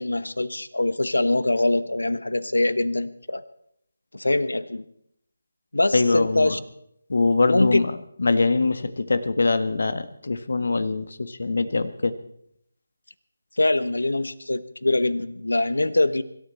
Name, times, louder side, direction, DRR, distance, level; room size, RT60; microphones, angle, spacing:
voice 1, 0.0-3.4 4.1-4.8 5.7-6.6 7.5-7.8 13.6-16.2, left 2 dB, 80° left, 15 dB, 1.2 m, -23 dB
voice 2, 5.9-6.6 7.1-7.9 8.2-12.1, left 3 dB, 60° left, 12 dB, 1.6 m, -23 dB
24.5 x 13.0 x 4.3 m, 0.74 s
figure-of-eight pair, 155°, 0 cm